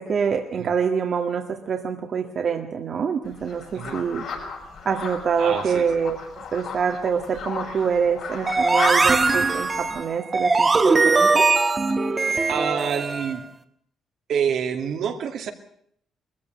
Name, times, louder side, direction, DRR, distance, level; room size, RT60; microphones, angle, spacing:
voice 1, 0.0-4.3 4.9-11.5, right 6 dB, 55° right, 4 dB, 1.8 m, -25 dB
sound 1, 3.2-10.0, left 5 dB, 65° left, 7.5 m, -36 dB
voice 2, 5.4-6.0 9.0-9.2 12.5-13.4 14.3-15.5, right 7 dB, 70° right, 4 dB, 2.5 m, -27 dB
sound 2, 8.5-13.4, right 3 dB, 30° right, 1.4 m, -20 dB
20.5 x 15.0 x 9.3 m, 0.68 s
cardioid pair, 90°, 0 cm